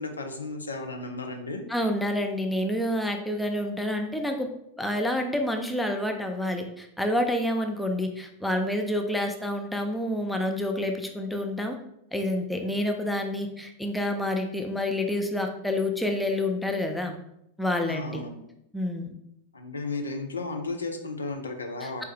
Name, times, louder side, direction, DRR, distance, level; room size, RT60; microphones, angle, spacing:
voice 1, 0.0-1.6 17.8-18.4 19.5-22.0, left 3 dB, 75° left, 4 dB, 0.6 m, -34 dB
voice 2, 1.7-4.5 4.8-11.8 12.1-17.2 17.6-18.2 18.7-19.1, left 1 dB, 5° left, 4 dB, 0.5 m, -28 dB
4.5 x 3.2 x 3.4 m, 0.79 s
figure-of-eight pair, 90°, 0 cm